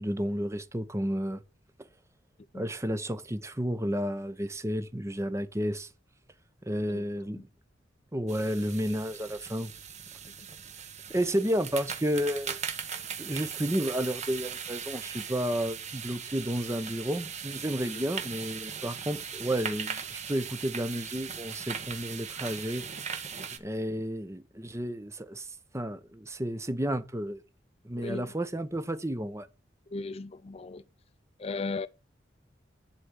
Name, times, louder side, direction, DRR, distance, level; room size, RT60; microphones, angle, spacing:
voice 1, 0.0-1.4 2.5-5.9 6.7-7.5 8.1-9.7 11.1-12.6 13.2-22.8 23.6-27.4 27.8-29.5, equal, 15° right, 0.9 m, -31 dB
voice 2, 6.9-7.4 10.3-10.4 17.8-18.0 28.0-28.3 29.9-30.8 31.4-31.9, left 3 dB, 35° left, 0.5 m, -37 dB
sound 1, 8.3-23.6, right 7 dB, 35° right, 1.3 m, -39 dB
11.0 x 4.4 x 8.1 m
head